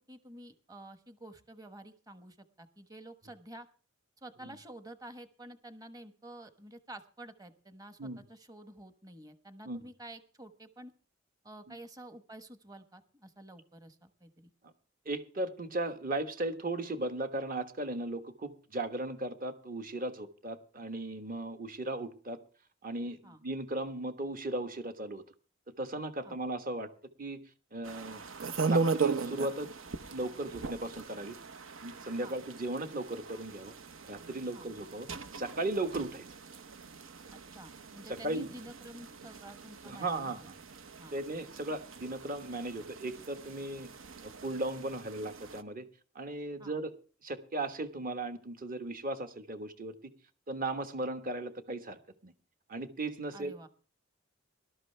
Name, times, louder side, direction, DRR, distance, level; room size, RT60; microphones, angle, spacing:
voice 1, 0.1-3.7 4.2-10.9 11.4-14.5 23.2-23.4 26.2-26.4 32.2-32.4 34.5-34.7 37.3-40.3 41.0-41.1 46.6-46.8 53.3-53.7, right 1 dB, 20° right, 10 dB, 1.1 m, -50 dB
voice 2, 15.0-22.4 22.8-25.2 25.8-26.9 27.2-27.4 27.7-28.2 28.6-29.7 30.1-31.4 31.8-33.7 34.1-35.1 35.3-36.2 38.1-38.5 39.8-40.5 41.1-43.9 44.2-45.9 46.1-46.9 47.2-49.9 50.5-52.3 52.7-53.5, right 2 dB, 45° right, 8 dB, 1.3 m, -36 dB
sound 1, 27.8-45.6, right 4 dB, 90° right, 0.9 m, -39 dB
19.0 x 12.5 x 3.4 m, 0.40 s
head